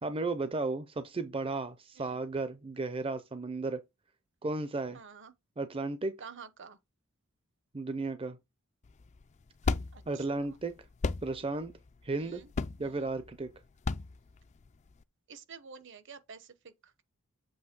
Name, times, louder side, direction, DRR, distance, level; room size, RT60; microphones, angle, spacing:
voice 1, 0.0-3.8 4.4-5.0 5.6-6.2 7.7-8.4 10.1-10.8 11.2-11.7 12.0-12.4 12.8-13.5, right 3 dB, 25° right, 0.6 m, -34 dB
voice 2, 4.9-5.3 6.2-6.8 9.9-10.6 12.1-12.5 12.8-13.2 15.3-17.0, right 6 dB, 55° right, 1.0 m, -50 dB
sound 1, 8.8-15.0, left 4 dB, 30° left, 0.4 m, -36 dB
7.7 x 3.1 x 6.0 m
head